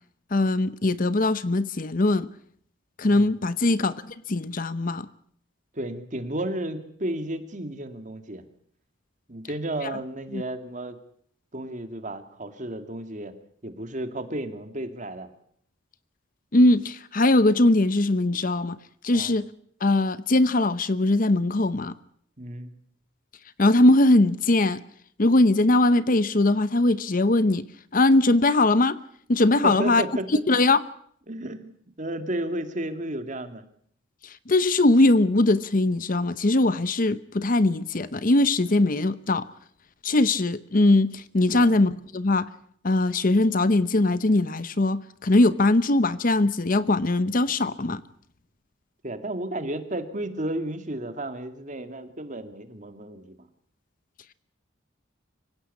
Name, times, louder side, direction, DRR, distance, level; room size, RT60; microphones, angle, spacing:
voice 1, 0.3-2.3 3.0-3.9 4.3-5.1 10.3-10.4 16.5-18.8 19.0-19.4 19.8-21.9 23.6-24.8 25.2-27.6 27.9-29.0 29.3-30.0 30.5-30.8 34.5-39.4 40.0-42.5 42.8-48.0, left 2 dB, 45° left, 0.8 m, -21 dB
voice 2, 3.0-3.4 5.7-8.4 9.3-11.0 11.5-13.3 13.6-15.3 19.1-19.4 22.4-22.7 29.6-30.4 31.3-33.6 41.5-41.8 49.0-53.3, right 1 dB, 40° right, 2.2 m, -33 dB
25.0 x 16.5 x 8.4 m
head